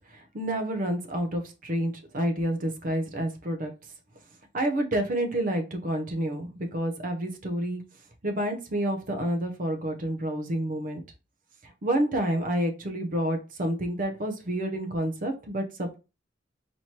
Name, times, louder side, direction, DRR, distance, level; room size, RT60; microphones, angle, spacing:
voice 1, 0.1-3.7 4.5-7.8 8.2-11.0 11.6-16.0, right 1 dB, 45° right, 5 dB, 0.7 m, -29 dB
4.4 x 3.1 x 2.8 m, 0.29 s
head